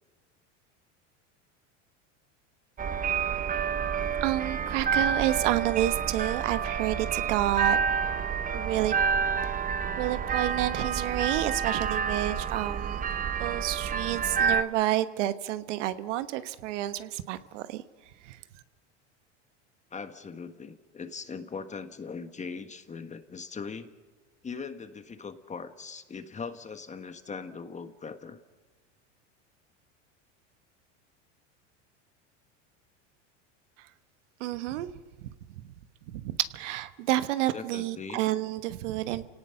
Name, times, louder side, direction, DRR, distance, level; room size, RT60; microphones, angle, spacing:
sound 1, 2.8-14.6, right 6 dB, 25° right, 0.9 m, -29 dB
voice 1, 4.2-7.8 8.1-8.2 8.5-8.9 9.4-9.7 10.0-13.0 13.4-17.8 18.2-18.4 34.4-34.9 35.6-35.7 36.1-39.3, right 14 dB, 80° right, 12 dB, 1.2 m, -29 dB
voice 2, 19.9-23.9 24.4-28.4 37.5-38.2, left 5 dB, 20° left, 9 dB, 1.4 m, -40 dB
29.5 x 18.0 x 5.8 m, 1.3 s
supercardioid pair, 110°, 36 cm